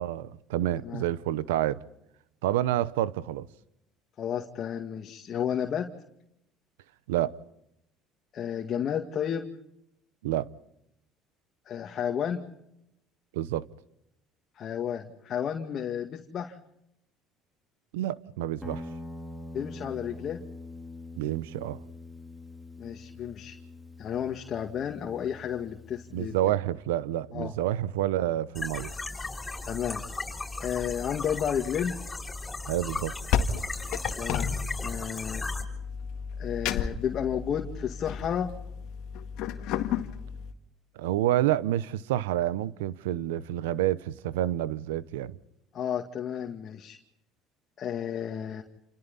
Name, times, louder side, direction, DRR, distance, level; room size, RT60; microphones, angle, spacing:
voice 1, 0.0-1.8 2.4-3.5 7.1-7.4 10.2-10.5 13.3-13.7 17.9-18.8 21.2-21.8 26.1-28.9 32.7-33.1 41.0-45.4, right 13 dB, 90° right, 0.9 m, -28 dB
voice 2, 4.2-5.9 8.3-9.5 11.7-12.4 14.6-16.6 19.5-20.4 22.8-23.6 24.0-26.4 27.3-27.5 29.6-30.0 30.6-32.0 34.1-35.5 36.4-38.5 45.7-47.0 47.8-48.6, left 8 dB, 50° left, 2.2 m, -32 dB
Guitar, 18.6-26.4, left 2 dB, 5° right, 3.7 m, -44 dB
sound 1, 28.5-35.6, left 3 dB, 20° left, 7.0 m, -36 dB
sound 2, 32.8-40.5, left 8 dB, 70° left, 1.9 m, -33 dB
29.0 x 28.0 x 4.1 m
supercardioid pair, 80°, 0 cm